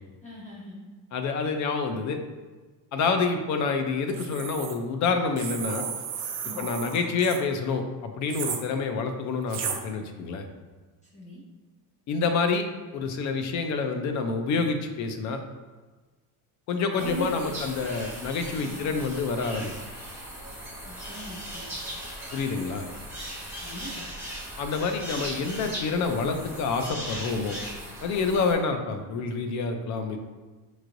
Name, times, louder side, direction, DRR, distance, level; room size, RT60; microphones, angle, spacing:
voice 1, 0.2-0.9 6.4-6.7 11.1-11.4 17.0-17.6 18.6-19.0 20.8-21.7 23.6-24.1, right 1 dB, 20° left, -6 dB, 0.7 m, -40 dB
voice 2, 1.1-2.2 2.9-5.8 6.6-10.5 12.1-12.7 12.9-15.4 16.7-19.7 22.3-22.9 24.6-27.6 28.0-30.2, left 4 dB, 50° left, 6 dB, 0.5 m, -27 dB
sound 1, 4.1-4.7 5.4-7.4 8.3-8.6 9.5-9.8, right 7 dB, 65° right, 0.7 m, -33 dB
sound 2, 17.0-28.5, right 1 dB, 5° right, 1.1 m, -38 dB
5.5 x 3.1 x 2.5 m, 1.3 s
cardioid pair, 170°, 39 cm